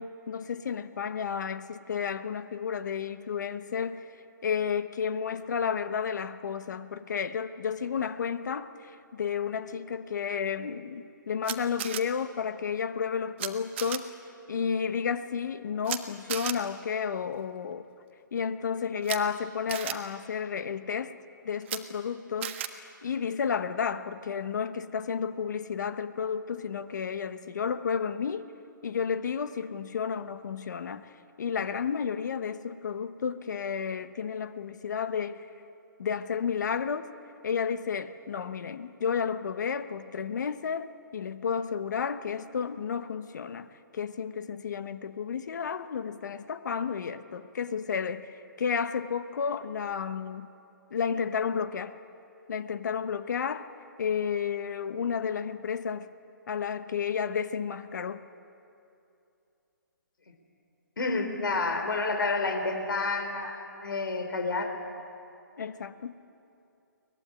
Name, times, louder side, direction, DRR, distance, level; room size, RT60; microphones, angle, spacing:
voice 1, 0.0-4.1 4.4-14.1 14.5-17.9 18.3-21.2 21.4-28.5 28.8-31.1 31.4-35.5 36.0-37.1 37.4-43.7 43.9-50.5 50.9-52.0 52.5-53.7 54.0-56.1 56.5-58.2 65.6-66.1, left 6 dB, 60° left, 11 dB, 1.2 m, -32 dB
Camera, 11.4-12.0 13.4-13.5 13.8-14.0 15.8-16.0 16.3-16.5 19.0-19.2 19.7-19.9 21.6-21.8 22.4-22.7, right 12 dB, 35° right, 1.4 m, -33 dB
voice 2, 61.0-64.7, left 3 dB, 80° left, 4 dB, 3.9 m, -29 dB
23.5 x 20.0 x 9.9 m, 2.7 s
hypercardioid pair, 155°, 11 cm